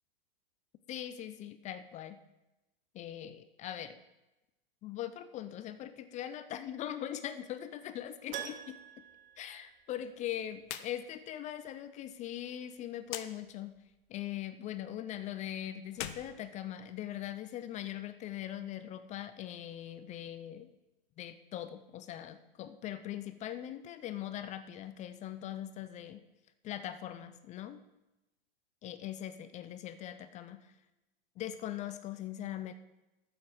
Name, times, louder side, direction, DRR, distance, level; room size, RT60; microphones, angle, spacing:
voice 1, 0.9-2.2 2.9-4.0 4.8-8.8 9.4-13.8 14.1-20.7 21.2-26.2 26.6-27.8 28.8-30.7 31.4-32.7, left 11 dB, 25° left, 12 dB, 0.5 m, -41 dB
Keyboard (musical), 8.3-10.4 10.6-10.7 13.4-13.5 13.8-13.9, right 9 dB, 25° right, 0.8 m, -45 dB
sound 1, 10.6-10.9 11.2-11.3 13.0-13.3 15.9-17.2, left 11 dB, 50° left, 0.9 m, -42 dB
9.5 x 7.7 x 6.3 m, 1.0 s
hypercardioid pair, 105°, 30 cm